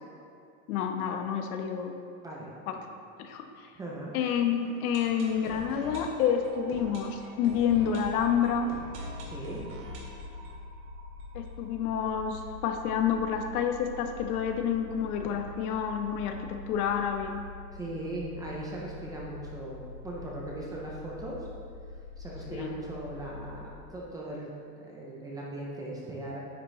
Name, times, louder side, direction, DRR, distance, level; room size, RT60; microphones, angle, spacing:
voice 1, 0.7-2.0 2.7-2.9 3.2-3.7 4.1-8.7 11.3-17.5 22.5-22.7, left 8 dB, 80° left, 5 dB, 1.1 m, -29 dB
voice 2, 2.2-2.5 3.7-4.1 9.3-9.6 17.7-21.5 22.2-24.5 24.8-26.4, right 2 dB, 10° right, -4 dB, 0.4 m, -39 dB
sound 1, 4.4-12.2 12.5-12.6 12.8-12.9 13.4-13.5, right 1 dB, 40° right, 2.2 m, -45 dB
sound 2, 7.9-23.7, left 3 dB, 35° left, 2.2 m, -45 dB
9.8 x 8.6 x 3.2 m, 2.3 s
supercardioid pair, 165°, 44 cm